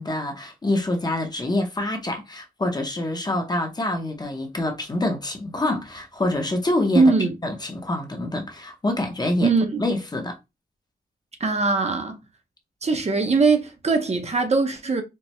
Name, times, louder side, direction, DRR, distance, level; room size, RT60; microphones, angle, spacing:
voice 1, 0.0-7.0 7.4-9.5 9.8-10.4, left 1 dB, 25° left, 0.6 m, -26 dB
voice 2, 6.9-7.3 9.4-9.8 11.4-12.2 12.8-15.0, right 3 dB, 40° right, 0.6 m, -21 dB
4.4 x 2.0 x 3.0 m
wide cardioid pair, 160°, 17 cm